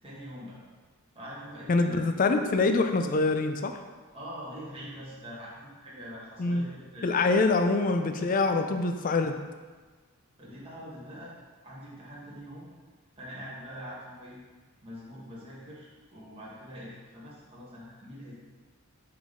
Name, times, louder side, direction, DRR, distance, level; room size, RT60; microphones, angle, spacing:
voice 1, 0.0-0.6 1.1-2.0 4.1-7.1 8.2-8.6 10.4-11.4 11.6-12.7 13.2-14.4 14.8-18.3, equal, 25° right, -7 dB, 1.3 m, -44 dB
voice 2, 1.7-3.8 6.4-6.7 7.0-9.4, left 3 dB, 40° left, 7 dB, 0.4 m, -25 dB
7.1 x 3.7 x 3.7 m, 1.4 s
head